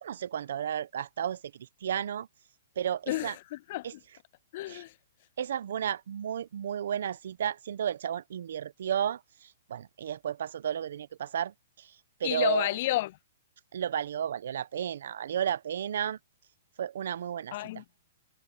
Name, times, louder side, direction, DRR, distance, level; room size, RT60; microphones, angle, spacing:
voice 1, 0.0-2.3 2.8-3.3 3.8-3.9 4.7-4.8 5.4-11.9 12.2-12.7 13.7-16.2 16.8-17.5, right 9 dB, 70° right, 1.2 m, -33 dB
voice 2, 3.1-4.0 4.5-4.9 12.2-13.2 17.5-17.8, left 16 dB, 50° left, 0.4 m, -31 dB
hypercardioid pair, 130°, 0 cm